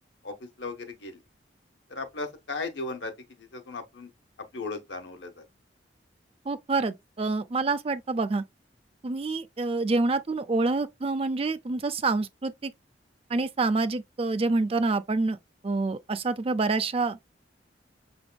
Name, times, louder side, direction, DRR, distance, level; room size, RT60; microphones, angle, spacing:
voice 1, 0.2-1.2 1.9-4.1 4.5-5.4, left 3 dB, 85° left, 1.2 m, -37 dB
voice 2, 6.5-8.4 9.0-12.7 13.3-15.4 15.6-17.2, right 3 dB, 35° right, 0.4 m, -27 dB
5.9 x 3.5 x 2.2 m
head